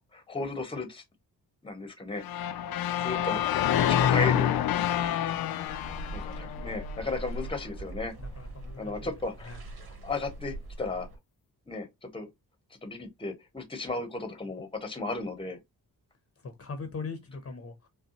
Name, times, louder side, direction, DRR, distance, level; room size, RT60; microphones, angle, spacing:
voice 1, 0.1-1.0 1.6-2.2 3.0-3.4 3.8-4.5 6.1-8.1 8.8-9.6 10.0-11.1 11.7-12.3 12.8-15.6, left 3 dB, 15° left, 0.8 m, -34 dB
sound 1, 2.2-7.3, left 10 dB, 70° left, 0.5 m, -27 dB
sound 2, 5.6-11.2, right 1 dB, 70° right, 1.6 m, -41 dB
voice 2, 8.2-9.1 9.4-9.6 16.4-17.7, left 4 dB, 40° left, 0.7 m, -40 dB
5.2 x 2.2 x 2.8 m
wide cardioid pair, 155°, 39 cm